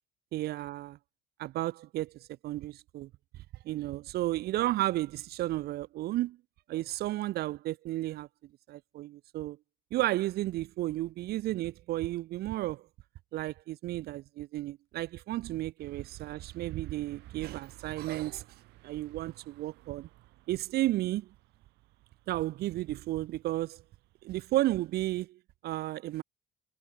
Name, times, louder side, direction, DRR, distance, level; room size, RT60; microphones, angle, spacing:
voice 1, 0.3-1.0 1.4-2.1 2.4-3.1 3.7-6.4 6.7-8.3 8.7-9.6 9.9-12.8 13.3-18.4 18.8-20.1 20.5-21.3 22.3-23.8 24.2-26.2, right 16 dB, 70° right, 0.6 m, -33 dB
sound 1, 15.8-25.2, right 19 dB, 85° right, 4.7 m, -59 dB
cardioid pair, 110°, 17 cm